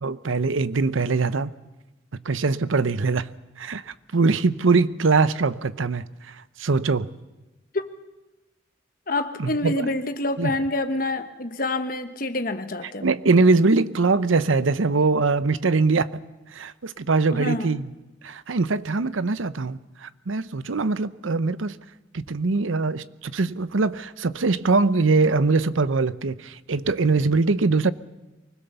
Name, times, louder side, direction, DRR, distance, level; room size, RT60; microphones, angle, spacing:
voice 1, 0.0-1.5 2.2-7.2 9.4-9.9 10.4-10.5 13.0-16.1 16.5-17.9 18.2-21.8 22.1-27.9, right 3 dB, 80° right, 0.7 m, -22 dB
voice 2, 9.1-13.1 17.3-17.8, left 2 dB, 45° left, 1.3 m, -27 dB
24.5 x 20.0 x 6.9 m
head